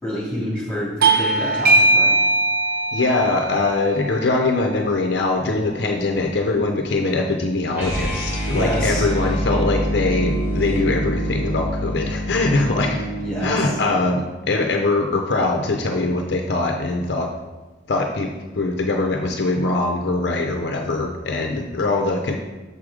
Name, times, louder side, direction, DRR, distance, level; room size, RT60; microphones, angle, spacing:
voice 1, 0.0-2.1 8.4-9.2 13.2-13.7, equal, 5° left, -7 dB, 2.6 m, -27 dB
Bell / Doorbell, 1.0-6.1, right 2 dB, 50° right, 0.6 m, -21 dB
voice 2, 2.9-13.0 13.4-17.3 17.9-22.4, left 2 dB, 55° left, 2 dB, 0.5 m, -22 dB
sound 1, 7.7-13.8, equal, 10° right, 1.7 m, -25 dB
6.7 x 5.0 x 4.8 m, 1.2 s
head